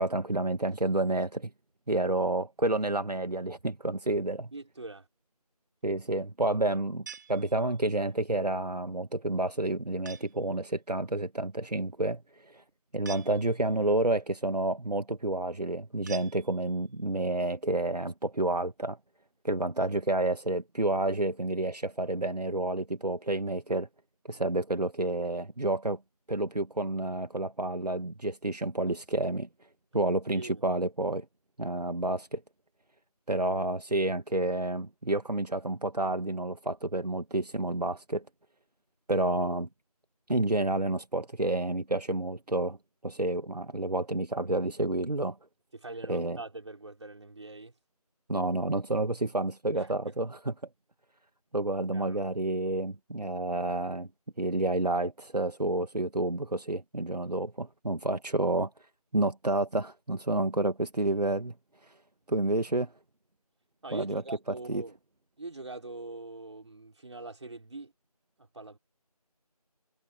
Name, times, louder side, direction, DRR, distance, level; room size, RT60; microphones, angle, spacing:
voice 1, 0.0-1.5 1.9-4.5 5.8-12.2 12.5-12.6 12.9-19.0 19.4-23.9 24.3-26.0 26.3-29.5 29.9-31.3 31.6-32.4 33.3-38.2 39.1-39.7 40.3-42.8 43.0-45.4 46.1-46.4 48.3-50.5 51.5-54.1 54.4-58.7 59.1-61.5 62.3-62.9 63.9-64.2 64.7-64.8, right 2 dB, 90° right, 1.8 m, -29 dB
voice 2, 4.5-5.1 30.3-30.6 45.7-47.7 49.7-50.1 51.9-52.2 63.8-65.0 65.4-67.9 68.4-68.8, right 2 dB, 45° right, 5.4 m, -43 dB
sound 1, 7.1-8.0 10.0-10.5 13.0-13.9 16.1-16.9, right 5 dB, 30° right, 5.9 m, -47 dB
figure-of-eight pair, 170°, 20 cm